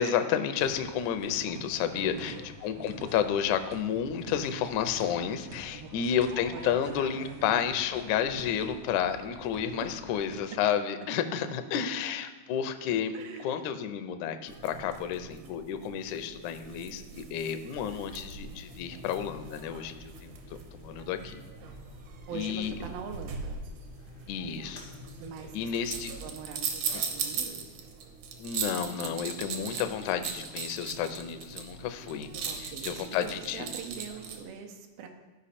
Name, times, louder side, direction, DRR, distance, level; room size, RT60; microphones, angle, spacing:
voice 1, 0.0-13.1 13.4-20.3 20.7-21.4 22.3-22.8 24.3-24.9 25.5-26.1 26.9-27.0 28.4-32.3 32.6-33.7, left 8 dB, 85° left, 8 dB, 1.7 m, -31 dB
sound 1, 0.5-10.4, equal, 55° right, 0.9 m, -47 dB
voice 2, 1.9-2.5 2.8-3.1 5.7-5.9 6.5-6.7 7.0-7.7 13.1-13.6 22.3-23.6 25.2-25.7 26.2-27.9 32.5-35.1, right 6 dB, 90° right, 4 dB, 2.6 m, -43 dB
sound 2, 14.5-34.4, right 6 dB, 75° right, 2.2 m, -40 dB
sound 3, 17.7-26.4, left 3 dB, 50° left, 0.6 m, -51 dB
13.0 x 5.1 x 4.2 m, 1.2 s
omnidirectional pair, 4.1 m